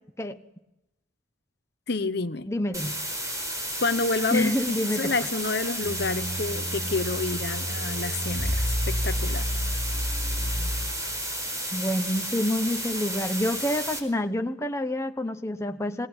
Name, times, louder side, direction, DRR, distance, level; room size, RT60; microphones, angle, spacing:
voice 1, 1.9-2.5 3.8-4.5 5.0-9.5, left 3 dB, 55° left, 12 dB, 1.0 m, -29 dB
voice 2, 2.5-3.0 4.3-5.3 11.7-16.1, left 1 dB, 15° left, 6 dB, 1.0 m, -27 dB
sound 1, 2.7-14.0, right 1 dB, 15° right, 4.7 m, -32 dB
sound 2, 5.8-11.2, equal, 35° left, 3.0 m, -30 dB
26.5 x 19.5 x 9.8 m, 0.93 s
head